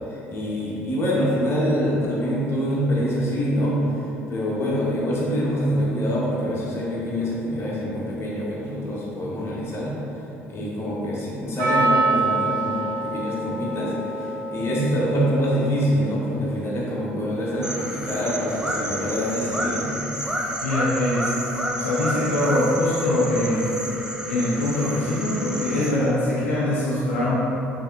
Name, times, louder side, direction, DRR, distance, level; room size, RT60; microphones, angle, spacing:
voice 1, 0.1-3.8 4.3-9.9 10.4-20.0, equal, 40° left, -6 dB, 1.3 m, -25 dB
Percussion, 11.6-16.5, right 3 dB, 70° right, 0.7 m, -26 dB
sound 1, 17.6-25.9, equal, 10° right, 0.6 m, -30 dB
voice 2, 20.6-21.3 21.7-23.7 24.3-27.4, left 1 dB, 80° left, -8 dB, 0.6 m, -23 dB
5.5 x 3.4 x 2.6 m, 2.9 s
figure-of-eight pair, 55°, 7 cm